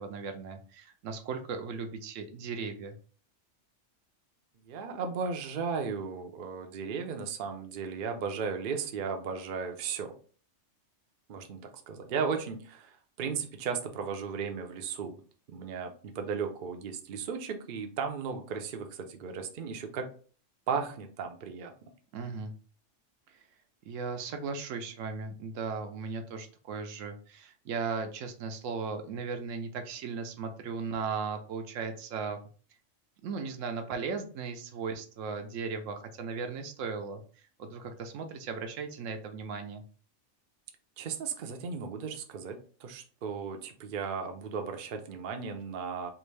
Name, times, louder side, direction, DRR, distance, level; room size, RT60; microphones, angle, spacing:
voice 1, 0.0-3.0 22.1-22.5 23.3-23.4 23.9-32.4 33.2-37.2 37.6-39.8, right 5 dB, 80° right, 6 dB, 0.9 m, -37 dB
voice 2, 4.7-10.1 11.3-15.1 15.5-20.1 20.7-21.7 41.0-46.1, right 5 dB, 55° right, 5 dB, 0.6 m, -35 dB
3.4 x 2.5 x 3.2 m, 0.41 s
omnidirectional pair, 1.3 m